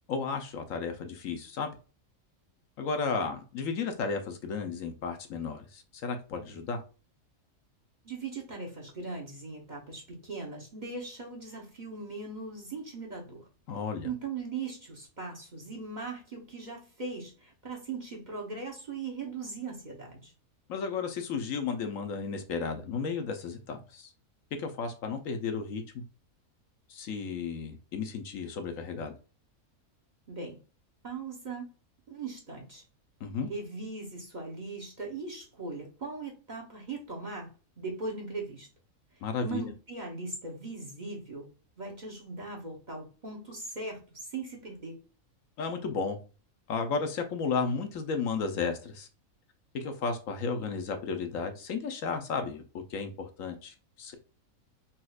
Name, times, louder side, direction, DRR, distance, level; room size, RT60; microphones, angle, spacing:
voice 1, 0.1-1.7 2.8-6.8 13.7-14.1 20.7-24.1 24.6-26.0 26.9-29.1 33.2-33.5 39.2-39.6 45.6-46.2 46.7-49.1 49.7-52.6 52.9-54.1, left 5 dB, 70° left, 5 dB, 1.0 m, -33 dB
voice 2, 8.0-13.5 14.0-20.3 30.3-30.6 31.0-31.7 32.1-32.8 33.5-38.7 39.1-41.5 41.8-45.0, right 3 dB, 35° right, -2 dB, 0.9 m, -39 dB
4.2 x 2.4 x 2.3 m, 0.35 s
omnidirectional pair, 1.5 m